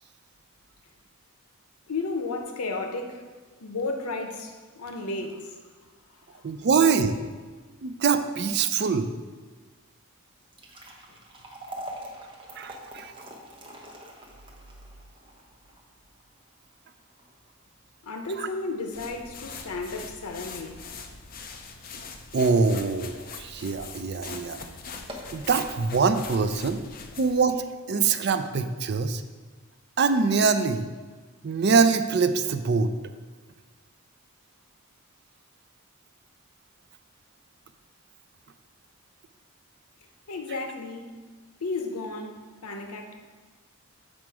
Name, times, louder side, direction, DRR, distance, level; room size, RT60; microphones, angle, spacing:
voice 1, 1.9-3.3 3.6-5.6 6.3-6.4 18.0-20.8 40.3-41.1 41.6-43.1, left 3 dB, 90° left, 0.8 m, -33 dB
voice 2, 6.4-7.2 7.8-9.1 12.6-13.1 18.4-18.5 22.3-24.6 25.3-26.8 27.2-29.2 30.0-30.9 31.4-32.9, right 5 dB, 50° right, 0.4 m, -24 dB
sound 1, 10.3-22.6 23.0-23.1 23.9-24.0 24.4-24.5 24.9-25.4, right 1 dB, 20° right, 0.9 m, -45 dB
sound 2, 18.9-27.5, left 4 dB, 40° left, 0.5 m, -42 dB
7.4 x 5.1 x 4.7 m
head